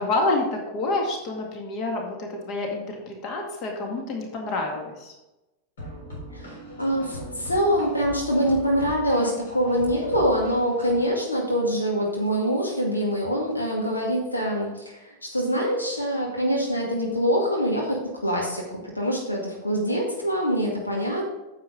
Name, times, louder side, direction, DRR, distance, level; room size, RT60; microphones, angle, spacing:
voice 1, 0.0-5.1, left 2 dB, 40° left, 2 dB, 1.9 m, -28 dB
sound 1, 5.8-11.1, equal, 60° left, 3.7 m, -39 dB
voice 2, 6.3-18.7 19.0-21.2, equal, 80° left, -1 dB, 2.1 m, -24 dB
9.5 x 7.3 x 3.9 m, 1.0 s
figure-of-eight pair, 90°, 0 cm